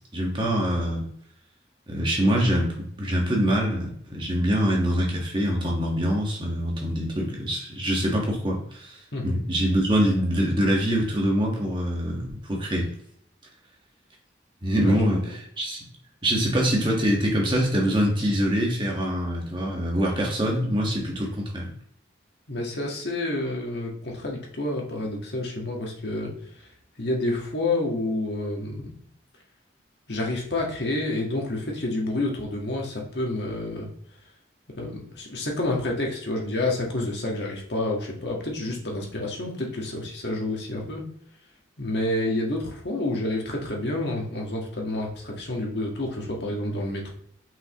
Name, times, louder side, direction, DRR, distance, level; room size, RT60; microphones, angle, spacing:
voice 1, 0.1-1.1 1.9-12.9 14.6-15.8 16.2-21.7, equal, 25° right, -1 dB, 1.4 m, -24 dB
voice 2, 14.8-15.3 22.5-26.3 27.0-28.9 30.1-33.9 34.8-41.0 41.8-47.1, left 2 dB, 65° left, -1 dB, 1.6 m, -29 dB
5.7 x 5.4 x 3.0 m, 0.66 s
head